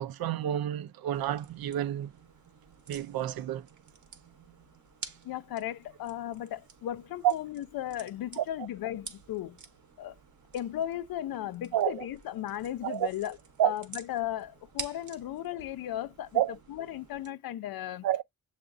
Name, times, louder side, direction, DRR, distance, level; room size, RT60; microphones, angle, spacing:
voice 1, 0.0-2.1 2.9-3.7 7.2-7.3 8.4-8.5 11.7-12.1 12.8-13.1 13.6-13.7 16.3-16.6 18.0-18.2, right 11 dB, 85° right, 0.5 m, -29 dB
sound 1, 1.1-17.3, right 6 dB, 55° right, 0.9 m, -50 dB
voice 2, 5.2-9.6 10.0-10.1 10.5-13.4 13.6-16.4 16.7-18.1, left 12 dB, 85° left, 0.5 m, -36 dB
6.8 x 2.5 x 2.4 m
cardioid pair, 80°, 35 cm